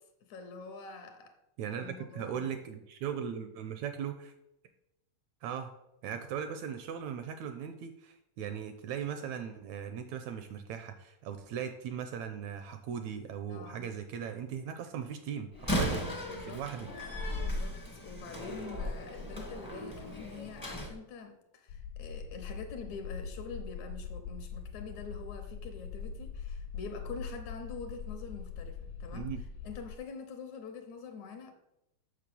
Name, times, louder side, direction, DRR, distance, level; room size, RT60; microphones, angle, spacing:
voice 1, 0.3-1.4 1.7-2.5 13.5-13.9 16.3-16.6 17.3-17.8 18.0-29.3 29.6-31.5, left 5 dB, 70° left, 2.2 m, -45 dB
voice 2, 1.6-4.3 5.4-5.7 6.0-16.2 16.5-16.9 29.1-29.4, right 8 dB, 75° right, 1.8 m, -38 dB
Slam, 15.5-20.9, equal, 20° left, 0.5 m, -36 dB
sound 1, 21.7-30.0, left 5 dB, 90° left, 2.2 m, -42 dB
7.6 x 6.5 x 6.8 m
omnidirectional pair, 3.7 m